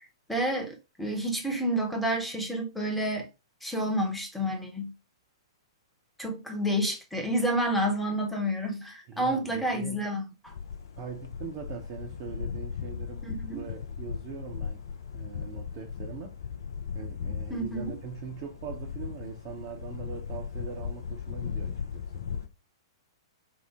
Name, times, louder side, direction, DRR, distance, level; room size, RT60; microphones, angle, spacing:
voice 1, 0.3-3.3 3.6-4.9 6.2-10.3 13.2-13.6 17.5-17.9, equal, 5° left, 0.8 m, -29 dB
voice 2, 9.1-10.0 11.0-14.8 15.1-16.4 16.9-22.2, right 6 dB, 40° right, 0.7 m, -42 dB
sound 1, 10.5-22.5, left 6 dB, 60° left, 0.4 m, -37 dB
4.5 x 2.0 x 3.4 m
figure-of-eight pair, 110°, 2 cm